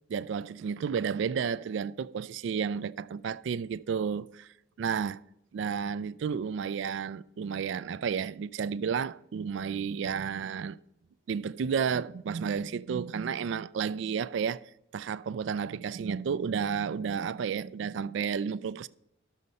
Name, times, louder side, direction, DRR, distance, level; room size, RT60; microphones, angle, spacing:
voice 1, 0.1-4.5 4.8-5.2 5.5-10.8 11.3-14.6 14.9-18.9, right 6 dB, 65° right, 0.3 m, -32 dB
12.5 x 6.5 x 4.1 m
head